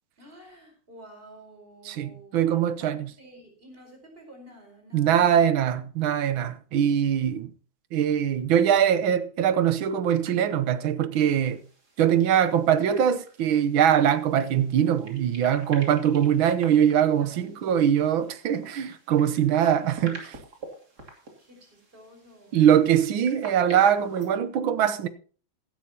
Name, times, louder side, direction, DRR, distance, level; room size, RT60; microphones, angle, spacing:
voice 1, 0.2-5.5 17.1-17.6 21.4-22.7, right 1 dB, 25° right, 4.8 m, -50 dB
voice 2, 1.9-3.1 4.9-7.5 7.9-11.6 12.0-20.4 22.5-25.1, right 9 dB, 75° right, 1.7 m, -22 dB
sound 1, 11.4-24.3, right 3 dB, 50° right, 3.3 m, -48 dB
16.0 x 12.5 x 2.9 m
omnidirectional pair, 2.2 m